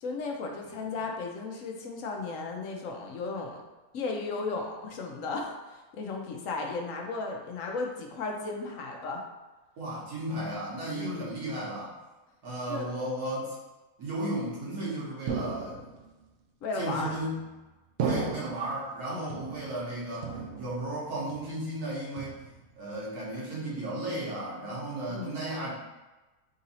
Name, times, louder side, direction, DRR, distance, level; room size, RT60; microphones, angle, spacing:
voice 1, 0.0-3.6 3.9-9.2 10.9-11.3 12.7-12.9 16.6-17.1 19.1-19.4 25.1-25.4, left 3 dB, 70° left, 2 dB, 1.0 m, -35 dB
voice 2, 9.8-12.0 12.4-13.6 14.0-15.8 16.7-17.4 18.0-22.4 22.8-25.7, right 1 dB, 90° right, -6 dB, 1.7 m, -34 dB
sound 1, 15.3-16.1 17.0-17.5 18.0-18.8 19.3-19.9 20.2-21.0 21.3-21.7 22.2-22.8, right 5 dB, 65° right, 0.8 m, -35 dB
3.8 x 2.6 x 4.1 m, 1.1 s
omnidirectional pair, 1.6 m